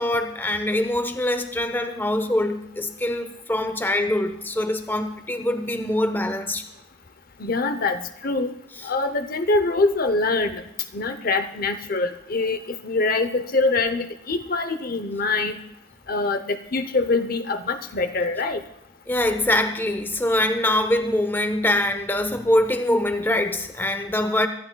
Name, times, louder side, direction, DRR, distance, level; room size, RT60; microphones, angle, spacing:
voice 1, 0.0-6.6 19.1-24.5, left 1 dB, 10° left, 7 dB, 0.8 m, -23 dB
voice 2, 7.4-8.5 8.8-10.6 10.9-15.6 16.1-18.6, left 3 dB, 50° left, 9 dB, 0.7 m, -24 dB
25.0 x 12.0 x 2.3 m, 0.81 s
head